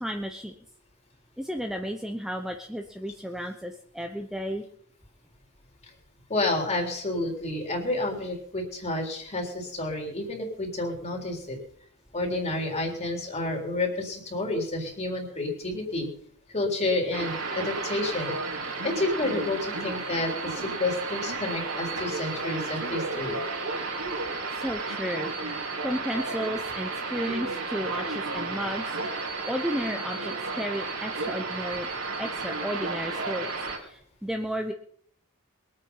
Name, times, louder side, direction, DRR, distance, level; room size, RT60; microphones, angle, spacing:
voice 1, 0.0-0.5 1.5-4.6 24.6-28.8 29.5-31.9 32.2-33.5 34.2-34.7, equal, ahead, 3 dB, 0.9 m, -33 dB
voice 2, 6.3-11.6 12.1-16.1 16.5-18.3 18.6-23.4, left 2 dB, 30° left, 1 dB, 4.0 m, -30 dB
sound 1, 17.1-33.8, right 3 dB, 75° right, 4.2 m, -32 dB
22.5 x 8.7 x 5.7 m, 0.62 s
head